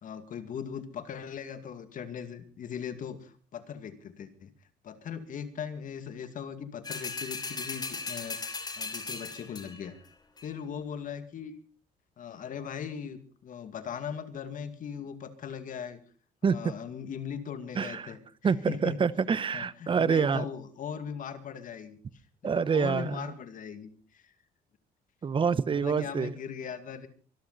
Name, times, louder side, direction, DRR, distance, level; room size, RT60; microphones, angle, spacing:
voice 1, 0.0-4.5 4.8-8.4 8.8-10.0 10.4-11.5 12.2-16.0 16.4-18.2 18.7-19.0 19.5-22.0 22.4-24.3 25.7-27.1, left 7 dB, 50° left, 10 dB, 2.3 m, -39 dB
sound 1, 6.8-9.9 10.4-10.5, left 4 dB, 25° left, 3.3 m, -37 dB
voice 2, 16.4-16.7 17.7-18.1 18.4-20.4 22.4-23.3 25.2-26.4, right 6 dB, 30° right, 17 dB, 0.9 m, -27 dB
24.0 x 13.0 x 4.2 m, 0.40 s
cardioid pair, 110°, 17 cm